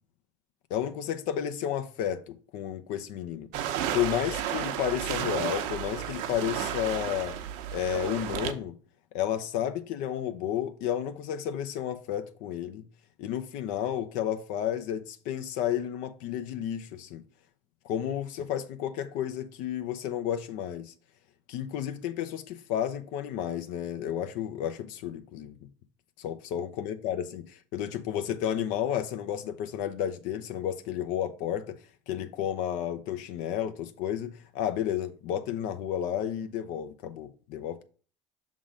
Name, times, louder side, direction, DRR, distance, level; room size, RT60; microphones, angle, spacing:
voice 1, 0.7-3.5 3.9-7.4 7.7-8.7 9.1-12.9 13.2-17.2 17.8-20.9 21.5-25.6 26.2-27.4 27.7-31.8 32.1-37.8, left 10 dB, 60° left, 0.6 m, -32 dB
sound 1, 3.5-8.5, right 10 dB, 60° right, 0.8 m, -32 dB
6.1 x 3.7 x 5.0 m
hypercardioid pair, 80°, 15 cm